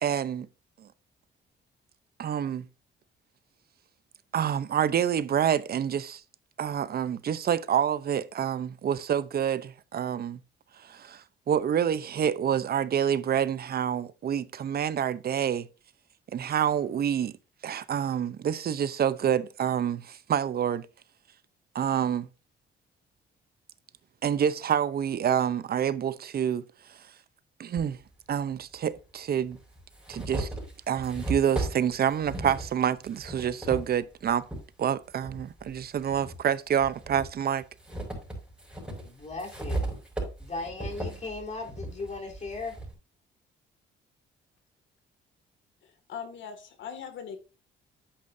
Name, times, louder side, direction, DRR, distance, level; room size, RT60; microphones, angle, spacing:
voice 1, 0.0-0.5 0.8-0.9 2.2-2.7 4.3-6.2 6.6-10.4 10.8-15.7 16.3-17.3 17.6-20.9 21.7-22.3 24.2-26.6 27.6-28.0 28.3-29.6 30.1-30.5 30.9-34.5 34.8-37.6, right 9 dB, 50° right, 0.7 m, -27 dB
sound 1, 27.8-27.9 28.9-29.0 29.5-34.6 35.2-36.4 36.8-42.9, right 2 dB, 5° right, 5.6 m, -36 dB
voice 2, 39.0-40.0 40.4-42.8, left 3 dB, 35° left, 3.5 m, -37 dB
voice 3, 45.8-47.4, left 7 dB, 70° left, 2.1 m, -40 dB
10.0 x 8.5 x 2.7 m
cardioid pair, 90°, 20 cm